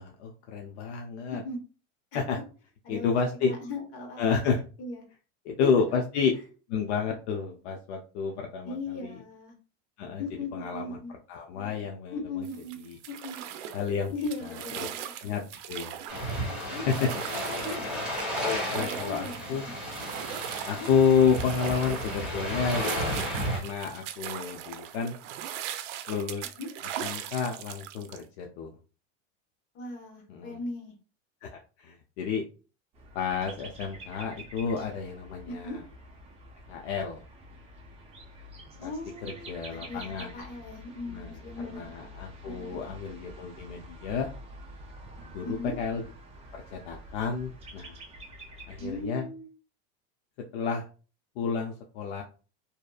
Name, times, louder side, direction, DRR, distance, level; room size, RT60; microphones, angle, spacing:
voice 1, 0.0-1.4 2.1-2.4 2.9-3.5 4.2-4.6 5.5-6.3 6.7-8.8 9.0-9.2 10.0-10.2 10.5-11.0 11.3-12.4 13.7-14.1 14.8-14.9 15.2-15.4 15.7-16.0 16.9-17.1 18.4-19.6 20.6-25.1 26.1-26.4 27.0-28.7 30.3-30.6 31.4-32.4 33.1-35.8 36.7-37.2 38.8-38.9 39.2-40.3 41.1-41.4 41.7-44.3 45.3-46.0 46.5-48.0 48.7-49.2 50.5-50.9 51.4-52.2, left 6 dB, 65° left, 2 dB, 0.5 m, -30 dB
voice 2, 2.8-4.2 4.8-5.0 5.6-5.8 8.6-9.6 10.2-11.1 12.1-12.8 13.1-13.4 14.1-15.1 16.7-16.8 17.1-17.9 18.7-19.7 20.7-20.9 26.6-26.7 29.7-30.9 35.5-35.8 38.8-42.1 42.5-42.8 45.4-45.8 48.8-49.5, left 2 dB, 40° left, 1 dB, 0.9 m, -38 dB
sound 1, 12.4-28.2, right 10 dB, 80° right, 0.5 m, -39 dB
sound 2, 16.1-23.6, equal, ahead, 0.9 m, -33 dB
sound 3, 32.9-49.0, equal, 15° right, 0.5 m, -47 dB
2.7 x 2.4 x 2.3 m, 0.36 s
supercardioid pair, 155°, 36 cm